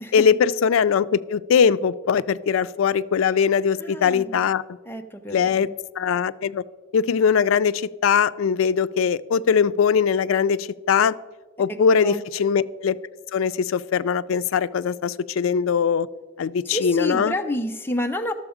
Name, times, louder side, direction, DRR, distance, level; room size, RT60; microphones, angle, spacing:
voice 1, 0.1-4.6 5.3-5.7 6.0-6.6 6.9-11.2 11.6-13.0 13.3-16.1 16.4-17.3, left 6 dB, 85° left, 17 dB, 0.4 m, -21 dB
voice 2, 3.8-4.4 4.9-5.5 12.0-12.2 16.7-18.3, left 1 dB, 10° left, 5 dB, 0.5 m, -28 dB
12.0 x 6.9 x 4.9 m, 1.3 s
head